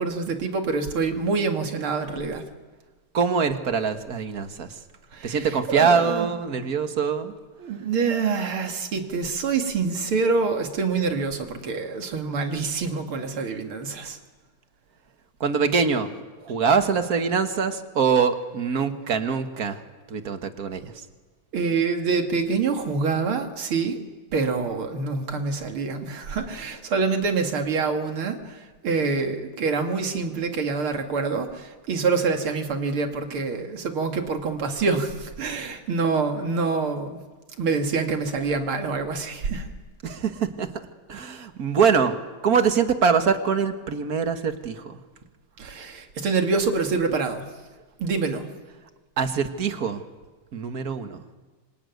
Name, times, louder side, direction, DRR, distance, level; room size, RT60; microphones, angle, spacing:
voice 1, 0.0-2.4 5.1-6.3 7.6-14.2 21.5-24.0 24.3-37.2 37.6-39.7 41.1-41.4 45.6-47.4 48.0-48.5, right 4 dB, 80° right, 5 dB, 3.0 m, -26 dB
voice 2, 3.1-4.7 5.2-7.3 15.4-16.1 16.4-19.8 20.1-20.9 40.0-40.7 41.1-42.2 42.4-44.9 49.2-50.0 50.5-51.2, right 6 dB, 45° right, 8 dB, 1.9 m, -23 dB
26.5 x 22.5 x 9.5 m, 1.3 s
omnidirectional pair, 2.3 m